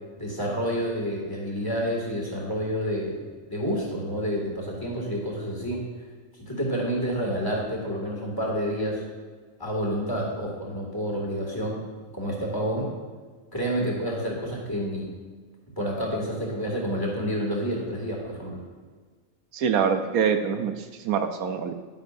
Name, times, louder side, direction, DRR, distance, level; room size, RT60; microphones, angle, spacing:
voice 1, 0.2-5.8 6.5-9.0 9.6-11.8 12.1-12.9 13.5-15.1 15.8-18.6, equal, 15° left, -3 dB, 2.4 m, -29 dB
voice 2, 19.5-21.7, right 7 dB, 80° right, 7 dB, 1.1 m, -25 dB
11.0 x 10.5 x 2.6 m, 1.5 s
omnidirectional pair, 1.5 m